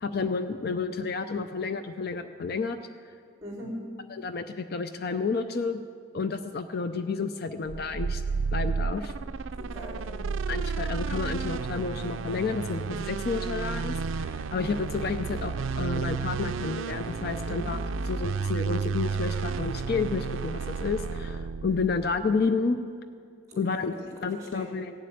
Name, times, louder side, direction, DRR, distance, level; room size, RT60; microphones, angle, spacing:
voice 1, 0.0-2.8 4.1-5.8 6.1-8.2 8.5-9.1 10.5-17.8 18.1-22.8 23.6-23.9 24.2-24.9, left 4 dB, 50° left, 9 dB, 0.5 m, -30 dB
voice 2, 3.4-3.8 9.6-10.3 17.4-17.7 23.5-24.8, equal, 15° right, -2 dB, 4.2 m, -41 dB
sound 1, 7.7-22.2, right 5 dB, 75° right, 0.4 m, -32 dB
15.5 x 7.6 x 9.4 m, 2.2 s
head